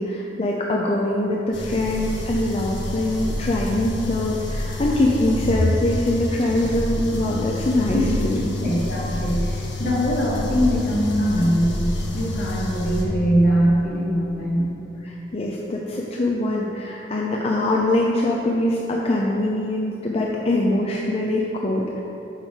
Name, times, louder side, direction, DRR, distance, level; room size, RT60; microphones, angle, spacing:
voice 1, 0.0-8.5 15.1-22.0, left 1 dB, 35° left, -2 dB, 0.5 m, -23 dB
sound 1, 1.5-13.0, left 1 dB, 70° left, 1.3 m, -27 dB
voice 2, 8.6-11.9 12.1-14.7, equal, 50° left, -6 dB, 1.6 m, -22 dB
7.2 x 5.4 x 4.6 m, 2.9 s
head